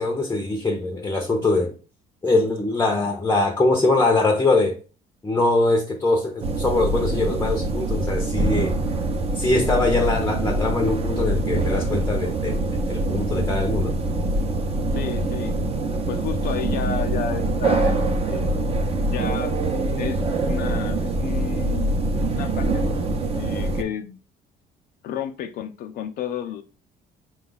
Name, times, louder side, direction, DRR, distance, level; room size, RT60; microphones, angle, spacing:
voice 1, 0.0-1.7 2.2-4.8 5.2-8.8 9.4-13.9, left 2 dB, 15° left, 0.6 m, -22 dB
sound 1, 6.4-23.8, right 2 dB, 35° right, 0.7 m, -24 dB
voice 2, 14.9-15.6 16.1-18.0 18.2-18.6 19.1-19.5 20.0-22.0 22.4-22.9 23.3-24.2 25.0-26.6, left 8 dB, 65° left, 0.4 m, -31 dB
4.5 x 2.3 x 3.9 m
cardioid pair, 110°, 17 cm